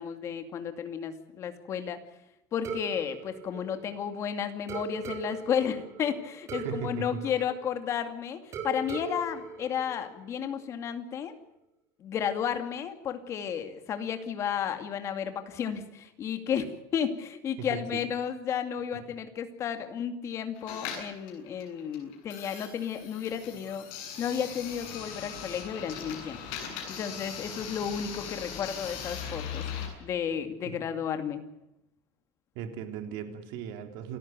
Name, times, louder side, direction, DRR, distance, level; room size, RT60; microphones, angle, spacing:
voice 1, 0.0-2.0 2.5-11.4 12.0-23.9 24.2-31.4, left 8 dB, 35° left, 8 dB, 2.3 m, -33 dB
sound 1, 2.6-4.2 4.7-8.1 8.5-10.5, right 4 dB, 35° right, 3.9 m, -39 dB
voice 2, 6.5-7.2 17.6-18.0 30.6-30.8 32.5-34.2, right 7 dB, 65° right, 6 dB, 3.6 m, -37 dB
sound 2, 20.6-29.9, left 7 dB, 60° left, 7.8 m, -39 dB
28.0 x 14.0 x 9.3 m, 0.87 s
cardioid pair, 160°, 9 cm